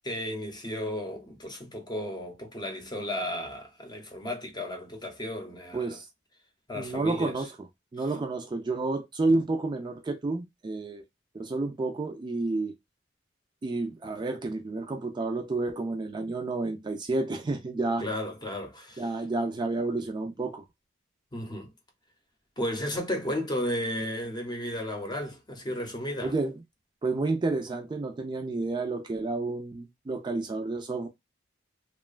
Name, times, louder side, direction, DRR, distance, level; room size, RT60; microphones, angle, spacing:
voice 1, 0.0-6.0 6.7-7.4 18.0-19.0 21.3-21.7 22.6-26.3, left 1 dB, 25° left, 0.7 m, -34 dB
voice 2, 5.7-6.1 6.7-7.7 7.9-11.0 11.3-12.7 13.6-18.0 19.0-20.6 26.2-26.6 27.0-31.1, right 2 dB, 25° right, 0.3 m, -30 dB
2.9 x 2.1 x 2.3 m
head